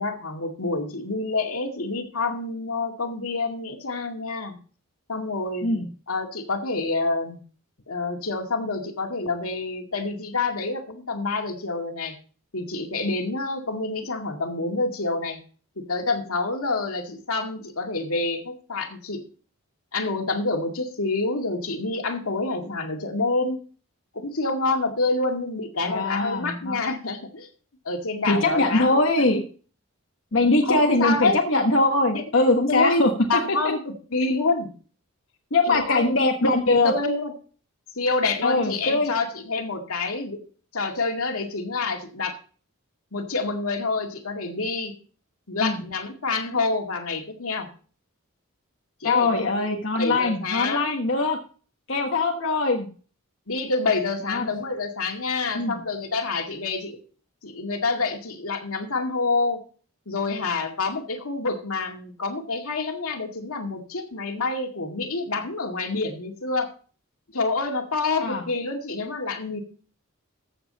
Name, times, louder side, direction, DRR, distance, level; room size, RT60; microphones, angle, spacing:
voice 1, 0.0-4.5 5.1-5.7 6.1-7.4 7.9-12.2 12.5-15.4 15.8-19.2 19.9-23.6 24.1-27.5 27.9-29.0 30.6-31.4 32.1-32.3 32.7-33.0 33.3-34.7 35.7-36.1 36.4-37.3 37.9-40.4 40.7-42.4 43.1-44.9 45.5-47.7 49.0-49.3 49.9-50.9 53.5-57.0 57.4-59.6 60.1-66.7 67.3-69.6, left 3 dB, 85° left, 3 dB, 2.2 m, -27 dB
voice 2, 25.8-26.8 28.3-29.4 30.3-33.1 35.5-36.9 38.4-39.1 45.6-45.8 49.0-51.4 51.9-52.9 54.2-54.5 55.5-55.8 68.2-68.4, left 2 dB, 60° left, 2 dB, 1.3 m, -22 dB
14.5 x 7.2 x 4.1 m, 0.40 s
head